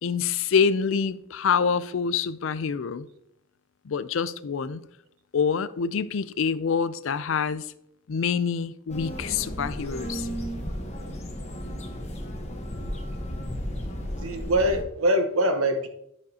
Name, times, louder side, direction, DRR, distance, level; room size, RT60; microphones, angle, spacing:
voice 1, 0.0-3.1 3.9-4.8 5.3-7.6 8.1-10.3, left 6 dB, 65° left, 0.4 m, -26 dB
sound 1, 8.9-14.8, equal, 30° left, 1.2 m, -34 dB
voice 2, 14.2-15.9, right 1 dB, 85° right, 1.1 m, -23 dB
11.0 x 6.4 x 2.8 m
head